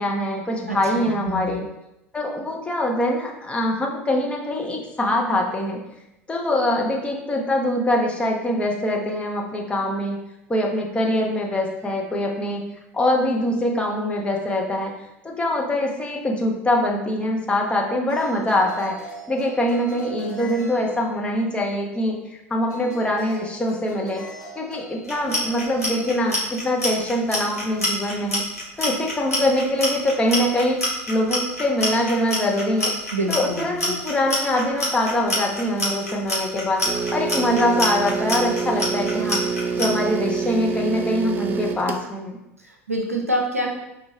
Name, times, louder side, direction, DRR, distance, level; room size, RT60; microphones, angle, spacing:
voice 1, 0.0-1.6 2.1-5.8 6.3-10.2 10.5-12.6 12.9-14.9 15.2-19.0 19.3-24.2 24.6-28.4 28.8-30.8 31.1-32.9 33.3-39.4 39.8-42.4, left 1 dB, 15° left, 0 dB, 0.7 m, -23 dB
voice 2, 0.7-1.6 33.1-33.9 42.6-43.7, right 1 dB, 90° right, 1 dB, 0.5 m, -27 dB
sound 1, 18.1-21.5 22.7-26.1, equal, 45° left, 1.3 m, -41 dB
Clock, 25.0-39.9, left 1 dB, 90° left, 1.0 m, -26 dB
sound 2, 36.8-42.1, right 5 dB, 25° right, 0.4 m, -26 dB
5.1 x 2.4 x 3.2 m, 0.89 s
figure-of-eight pair, 75°, 8 cm